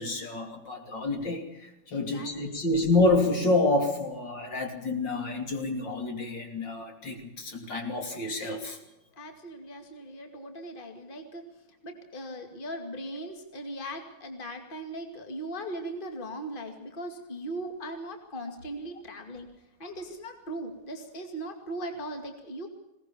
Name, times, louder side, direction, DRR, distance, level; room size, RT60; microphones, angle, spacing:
voice 1, 0.0-8.8, left 2 dB, 60° left, 4 dB, 3.7 m, -28 dB
voice 2, 1.9-2.6 9.2-11.4 11.8-19.5 19.8-22.7, right 1 dB, 25° left, 5 dB, 2.5 m, -39 dB
21.0 x 18.5 x 7.1 m, 0.92 s
omnidirectional pair, 2.2 m